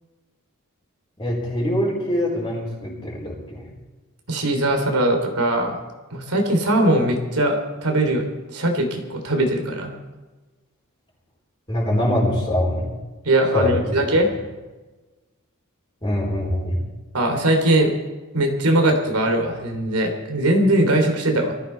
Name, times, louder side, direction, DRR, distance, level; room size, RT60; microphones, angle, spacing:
voice 1, 1.2-3.7 11.7-12.9 13.5-14.1 16.0-16.8, left 1 dB, 20° left, -4 dB, 4.3 m, -23 dB
voice 2, 4.3-5.8 6.1-9.9 13.2-14.3 17.1-17.9 18.3-21.5, right 1 dB, 90° right, 3 dB, 3.1 m, -20 dB
20.0 x 14.5 x 4.5 m, 1.2 s
head